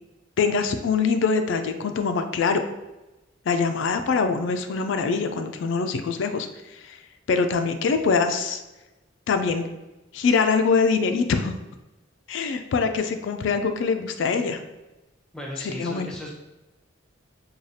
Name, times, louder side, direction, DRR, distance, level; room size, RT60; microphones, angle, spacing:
voice 1, 0.4-2.6 3.5-6.5 6.8-7.0 7.3-8.6 9.3-9.6 10.1-11.5 12.3-14.6 15.6-16.1, left 5 dB, 70° left, 7 dB, 0.3 m, -23 dB
voice 2, 15.3-16.3, equal, 5° left, -2 dB, 0.6 m, -35 dB
4.8 x 2.3 x 2.7 m, 1.0 s
head